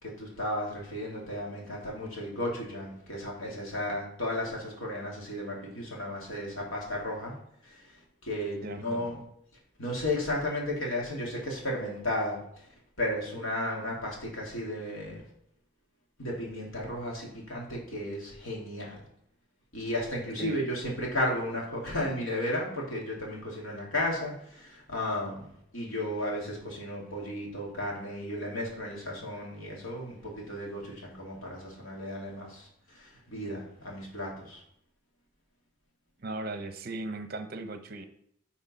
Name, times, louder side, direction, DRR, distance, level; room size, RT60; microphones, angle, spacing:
voice 1, 0.0-7.3 7.7-7.8 8.2-9.2 9.8-12.4 13.0-15.2 16.2-19.0 19.7-32.7 32.9-34.6, left 1 dB, 75° left, -2 dB, 2.3 m, -34 dB
voice 2, 8.6-9.1 20.4-20.6 36.2-38.1, right 2 dB, 45° right, 8 dB, 0.7 m, -37 dB
9.6 x 4.2 x 4.1 m, 0.71 s
head